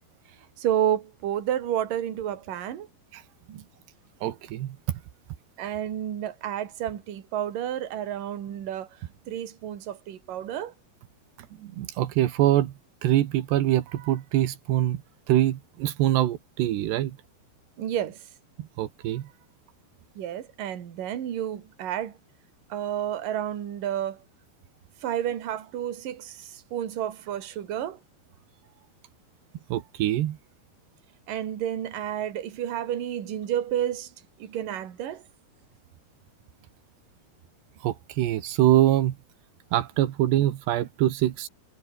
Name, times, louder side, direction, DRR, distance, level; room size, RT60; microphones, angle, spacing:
voice 1, 0.6-2.9 3.5-3.6 5.6-8.9 9.3-10.7 17.8-18.2 20.2-22.1 22.7-24.2 25.0-28.0 31.3-34.1 34.4-35.2, right 10 dB, 55° right, 3.8 m, -30 dB
voice 2, 4.2-4.8 11.6-12.7 13.0-15.0 15.3-17.2 18.6-19.3 29.7-30.4 37.8-39.2 39.7-41.5, right 13 dB, 85° right, 3.6 m, -24 dB
omnidirectional pair, 4.7 m